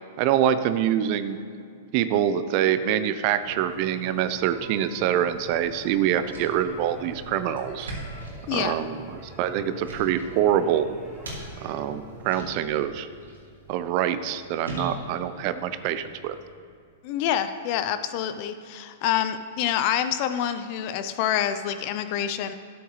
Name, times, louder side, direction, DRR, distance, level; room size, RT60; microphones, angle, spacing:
voice 1, 0.2-1.4 1.9-7.9 8.5-9.1 9.4-10.9 11.6-13.1 13.7-16.4, right 10 dB, 45° right, 12 dB, 0.5 m, -25 dB
sound 1, 3.4-12.4, right 1 dB, 10° left, 1.7 m, -45 dB
sound 2, 5.3-16.5, right 1 dB, 85° right, 2.3 m, -43 dB
voice 2, 8.5-8.8 17.0-22.5, left 10 dB, 50° left, 11 dB, 0.5 m, -27 dB
12.5 x 7.1 x 3.2 m, 2.3 s
hypercardioid pair, 110°, 0 cm